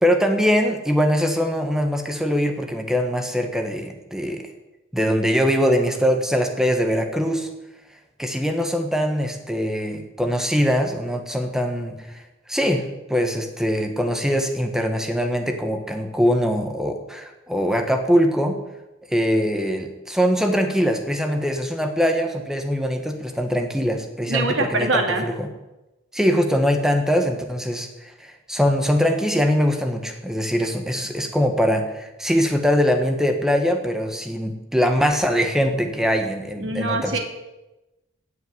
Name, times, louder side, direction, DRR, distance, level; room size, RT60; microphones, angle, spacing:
voice 1, 0.0-4.5 4.9-7.5 8.2-12.2 12.5-18.6 19.1-25.5 26.1-37.2, equal, 5° right, 5 dB, 1.4 m, -22 dB
voice 2, 24.3-25.3 36.6-37.2, right 2 dB, 70° right, 3 dB, 2.2 m, -23 dB
17.0 x 5.8 x 9.5 m, 1.0 s
head